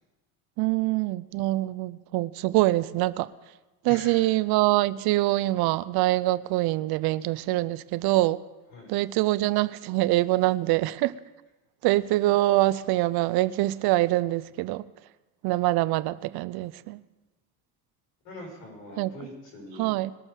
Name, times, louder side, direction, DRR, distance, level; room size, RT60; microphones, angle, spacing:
voice 1, 0.6-3.3 3.8-8.4 8.9-11.1 11.8-14.8 15.4-17.0 19.0-19.1 19.8-20.1, right 17 dB, 65° right, 17 dB, 0.6 m, -24 dB
voice 2, 3.9-4.3 8.7-8.9 18.2-19.9, left 1 dB, 85° left, -1 dB, 5.9 m, -43 dB
21.0 x 7.1 x 5.4 m, 1.1 s
supercardioid pair, 105°, 40 cm